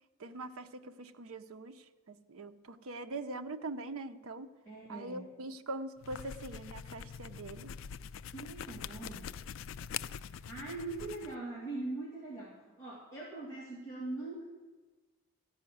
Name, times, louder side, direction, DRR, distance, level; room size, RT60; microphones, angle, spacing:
voice 1, 0.2-4.5 4.9-7.7, right 2 dB, 80° right, 8 dB, 0.7 m, -43 dB
voice 2, 4.6-5.3 8.3-9.3 10.3-14.4, right 2 dB, 15° left, -7 dB, 2.4 m, -42 dB
sound 1, 6.0-11.3, left 8 dB, 65° left, 0.3 m, -44 dB
14.0 x 5.6 x 9.2 m, 1.3 s
head